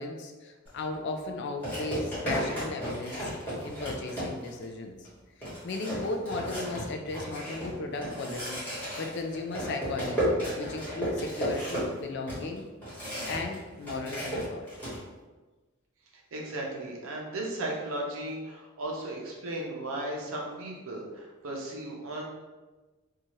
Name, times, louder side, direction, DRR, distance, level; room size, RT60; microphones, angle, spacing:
voice 1, 0.0-3.3 3.6-5.1 5.4-12.6 13.3-14.7, left 3 dB, 55° left, 4 dB, 0.4 m, -36 dB
sound 1, 0.7-0.8 1.6-4.6 5.1-5.2 5.4-13.6 13.8-15.0, equal, 10° left, 1.2 m, -34 dB
voice 2, 16.3-22.2, right 1 dB, 75° right, -2 dB, 0.7 m, -36 dB
2.7 x 2.3 x 3.0 m, 1.2 s
head